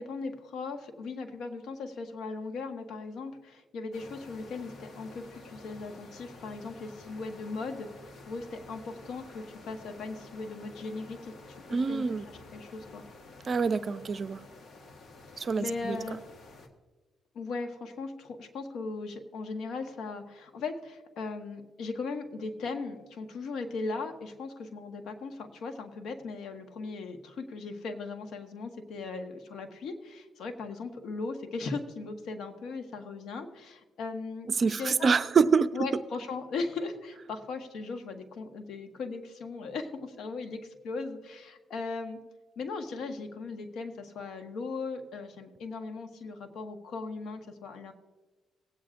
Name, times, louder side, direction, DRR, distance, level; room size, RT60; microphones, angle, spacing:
voice 1, 0.0-12.1 12.5-13.0 15.3-16.2 17.3-35.1 35.7-42.2 42.6-47.9, left 4 dB, 70° left, 6 dB, 1.2 m, -38 dB
sound 1, 3.9-16.7, left 3 dB, 50° left, 1.3 m, -50 dB
voice 2, 11.7-12.3 13.4-14.4 15.4-16.0 34.6-35.9, right 5 dB, 40° right, 11 dB, 0.5 m, -26 dB
19.0 x 8.8 x 2.5 m, 1.2 s
cardioid pair, 90°, 0 cm